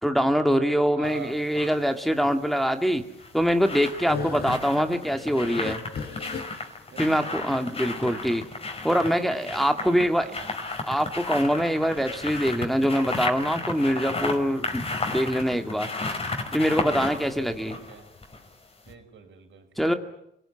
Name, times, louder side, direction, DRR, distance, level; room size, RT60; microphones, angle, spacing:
voice 1, 0.0-3.0 3.3-5.8 7.0-8.4 8.8-10.2 10.9-14.8 15.1-15.9 16.5-17.7 19.8-19.9, equal, ahead, 6 dB, 2.1 m, -24 dB
sound 1, 1.0-1.8 3.0-18.5 18.9-19.0, left 3 dB, 30° left, 5.2 m, -34 dB
voice 2, 1.0-1.4 4.3-4.5 6.9-8.2 9.0-10.5 17.3-18.1 18.8-19.9, right 6 dB, 70° right, 5 dB, 6.2 m, -45 dB
sound 2, 3.4-8.5, left 5 dB, 55° left, 4.4 m, -36 dB
28.5 x 19.0 x 9.9 m, 0.77 s
cardioid pair, 90°, 20 cm